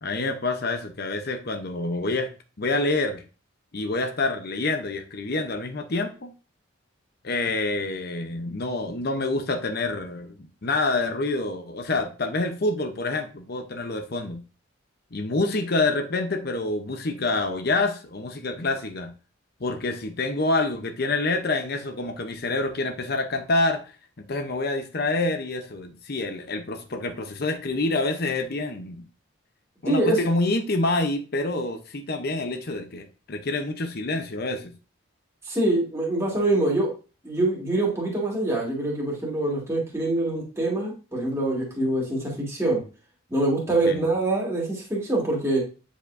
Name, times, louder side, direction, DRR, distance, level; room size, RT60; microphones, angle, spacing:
voice 1, 0.0-2.3 2.6-3.2 3.7-6.3 7.2-10.4 10.6-14.4 15.1-19.1 19.6-23.9 24.3-29.0 29.8-34.7 43.8-44.1, left 2 dB, 50° left, 6 dB, 0.8 m, -27 dB
voice 2, 29.8-30.2 35.5-36.9 37.2-42.8 43.3-45.6, right 2 dB, 15° right, -4 dB, 2.0 m, -24 dB
8.8 x 5.1 x 2.6 m, 0.34 s
head